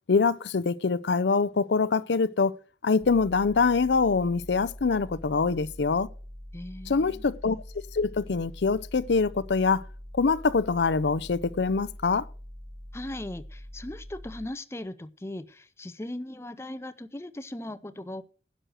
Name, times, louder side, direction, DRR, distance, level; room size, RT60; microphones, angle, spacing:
voice 1, 0.1-2.6 2.8-6.1 6.9-7.6 7.9-9.8 10.1-12.3, left 4 dB, 80° left, 0.6 m, -24 dB
sound 1, 3.0-14.4, equal, 30° right, 2.5 m, -44 dB
voice 2, 6.5-7.3 12.9-18.2, left 1 dB, 15° left, 0.5 m, -38 dB
11.0 x 6.3 x 6.3 m
head